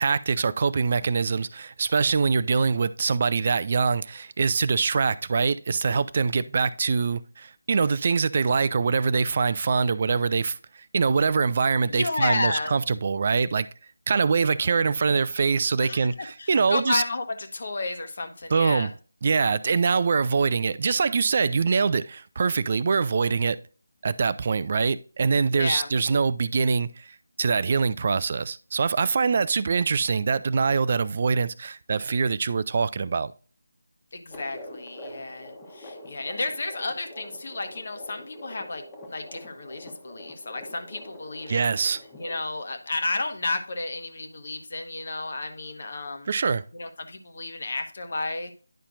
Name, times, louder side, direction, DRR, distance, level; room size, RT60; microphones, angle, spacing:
voice 1, 0.0-10.6 10.9-13.7 14.1-17.0 18.5-18.9 19.2-23.6 24.0-33.3 41.5-42.0 46.3-46.6, right 5 dB, 40° right, 0.3 m, -24 dB
voice 2, 11.9-12.8 15.8-18.9 25.4-25.9 34.1-38.8 39.1-41.7 42.2-46.3 46.7-48.5, left 2 dB, 50° left, 1.2 m, -32 dB
sound 1, 34.3-42.4, left 1 dB, 15° left, 1.2 m, -44 dB
10.0 x 5.6 x 2.5 m
figure-of-eight pair, 160°, 0 cm